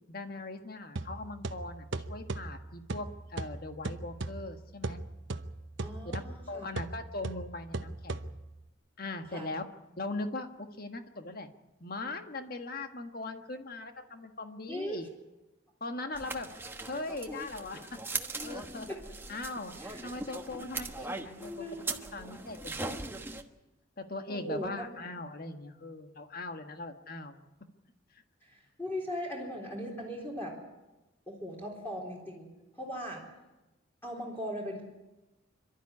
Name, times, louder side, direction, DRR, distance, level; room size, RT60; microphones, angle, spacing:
voice 1, 0.1-5.0 6.0-6.2 6.5-8.3 9.0-9.7 10.0-11.5 11.8-15.1 15.8-16.5 16.8-18.0 18.4-18.9 19.3-19.7 20.0-21.7 22.1-23.2 24.0-27.4, left 2 dB, 50° left, 6 dB, 1.5 m, -40 dB
sound 1, 1.0-8.7, right 2 dB, 70° right, 0.9 m, -39 dB
voice 2, 5.8-6.7 9.3-9.5 14.7-15.0 16.3-16.4 18.9-19.0 19.8-20.0 21.4-21.9 24.3-24.9 28.4-30.6 31.3-32.5 32.7-33.2 34.0-34.8, equal, 10° left, -2 dB, 4.0 m, -39 dB
sound 2, 16.2-23.4, right 3 dB, 10° right, 1.2 m, -40 dB
27.0 x 12.5 x 9.8 m, 1.1 s
head